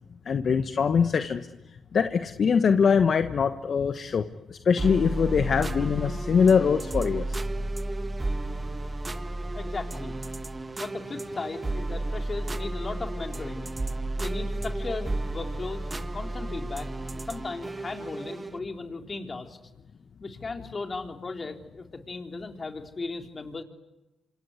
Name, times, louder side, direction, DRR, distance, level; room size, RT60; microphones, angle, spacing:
voice 1, 0.2-1.4 1.9-7.7, left 6 dB, 55° left, 9 dB, 1.3 m, -23 dB
sound 1, 4.8-18.6, right 2 dB, 25° right, 1.8 m, -32 dB
voice 2, 9.5-10.1 10.8-13.7 14.2-15.9 16.1-19.6 20.2-23.6, left 3 dB, 40° left, 3 dB, 3.9 m, -36 dB
27.5 x 26.5 x 8.2 m, 1.0 s
supercardioid pair, 50°, 0 cm